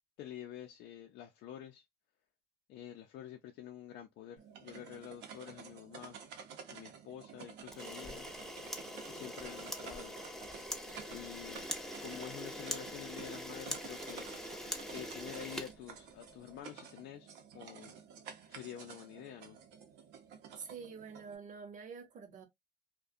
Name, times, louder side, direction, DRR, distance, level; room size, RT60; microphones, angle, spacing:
voice 1, 0.2-1.8 2.7-6.2 6.7-8.3 9.1-10.2 11.1-11.7 12.0-14.3 14.9-18.0 18.5-19.6, left 10 dB, 80° left, 0.5 m, -48 dB
sound 1, 4.4-21.4, right 7 dB, 90° right, 0.6 m, -52 dB
Camera, 7.7-16.4, equal, 5° left, 0.5 m, -43 dB
voice 2, 20.6-22.5, right 6 dB, 50° right, 0.8 m, -47 dB
2.4 x 2.2 x 2.5 m
cardioid pair, 110°, 17 cm